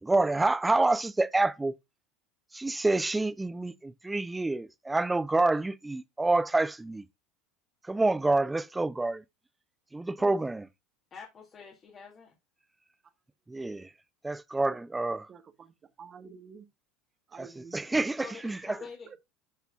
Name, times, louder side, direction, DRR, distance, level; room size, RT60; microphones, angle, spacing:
voice 1, 0.0-1.7 2.5-7.0 7.8-9.2 9.9-10.7 13.5-13.9 14.2-15.3 17.4-17.5 17.7-18.8, right 2 dB, 10° right, 0.7 m, -27 dB
voice 2, 11.1-12.4 18.2-19.2, left 5 dB, 35° left, 2.6 m, -46 dB
voice 3, 15.3-16.7 17.3-17.8 19.1-19.2, right 6 dB, 35° right, 1.4 m, -49 dB
12.5 x 5.8 x 2.4 m
hypercardioid pair, 80°, 0 cm